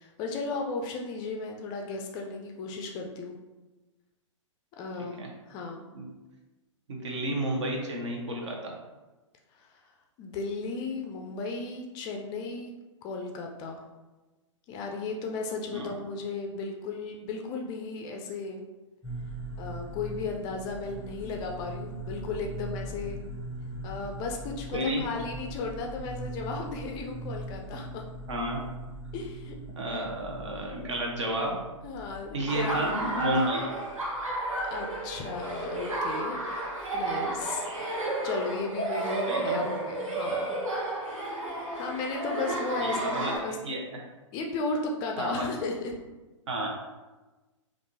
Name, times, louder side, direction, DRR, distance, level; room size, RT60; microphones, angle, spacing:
voice 1, 0.0-3.4 4.8-5.2 5.5-5.8 9.7-9.8 10.2-12.7 13.0-13.8 14.7-18.6 19.6-23.2 23.8-28.0 29.1-29.5 29.9-30.1 31.8-33.0 34.7-36.4 36.9-37.6 38.2-40.6 41.7-43.6 44.3-45.9, left 3 dB, 25° left, 2 dB, 0.4 m, -35 dB
voice 2, 5.0-5.3 5.9-6.1 6.9-8.7 15.7-16.0 24.7-25.0 28.3-28.6 29.7-31.6 32.3-33.7 37.6-37.8 39.3-39.6 42.8-44.0 45.2-45.5 46.5-46.7, equal, 60° right, 0 dB, 0.9 m, -31 dB
sound 1, 19.0-37.4, right 1 dB, ahead, 0.8 m, -42 dB
Laughter, 32.5-43.4, right 2 dB, 85° right, 1.0 m, -32 dB
3.5 x 2.5 x 2.7 m, 1.1 s
figure-of-eight pair, 115°, 17 cm